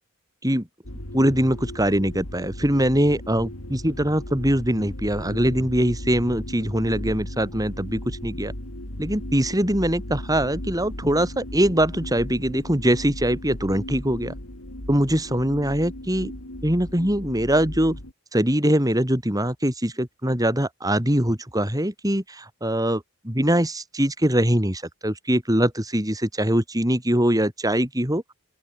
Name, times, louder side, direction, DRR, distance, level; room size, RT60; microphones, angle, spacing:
sound 1, 0.8-18.1, left 1 dB, 80° left, 5.1 m, -36 dB
voice 1, 1.1-8.5 9.0-14.3 14.9-16.3 16.6-18.0 18.3-28.2, right 1 dB, 15° right, 5.7 m, -22 dB
open air
head